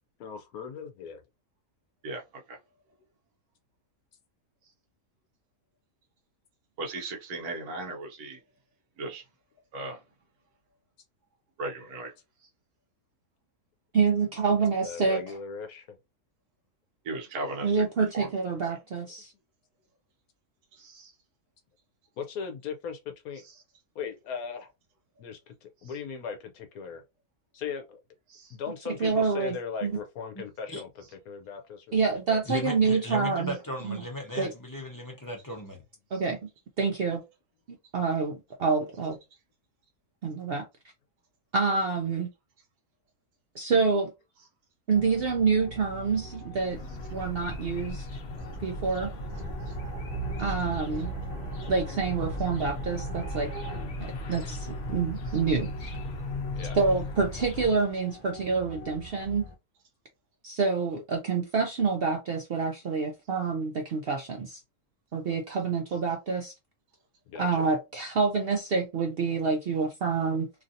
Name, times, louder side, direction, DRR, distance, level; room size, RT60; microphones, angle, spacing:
voice 1, 0.2-1.2 14.8-15.9 22.2-23.4 23.9-24.7 25.2-27.0 27.5-28.0 28.5-30.9 31.3-32.4 56.6-56.8 67.3-67.7, left 6 dB, 80° left, 1.1 m, -38 dB
voice 2, 6.8-8.4 9.0-9.2 9.7-10.0 11.6-12.1 17.1-17.7 18.1-18.3 20.8-21.1 28.3-28.5, right 2 dB, 90° right, 1.2 m, -36 dB
voice 3, 13.9-15.2 17.6-19.3 28.9-29.6 29.8-29.9 31.9-33.5 33.8-34.0 34.4-34.5 36.1-36.4 36.8-37.2 37.9-39.2 40.2-40.6 41.5-42.3 43.5-44.1 44.9-46.8 47.1-48.1 48.6-49.1 50.4-51.1 51.7-53.5 54.0-55.9 56.8-59.5 60.4-64.6 65.1-66.5 67.4-70.5, right 4 dB, 65° right, 0.6 m, -27 dB
voice 4, 32.5-35.8, left 1 dB, 20° left, 0.5 m, -36 dB
sound 1, 44.9-59.5, right 3 dB, 45° right, 1.4 m, -41 dB
sound 2, 46.7-57.7, left 2 dB, 55° left, 0.8 m, -37 dB
3.1 x 2.6 x 2.5 m
omnidirectional pair, 1.6 m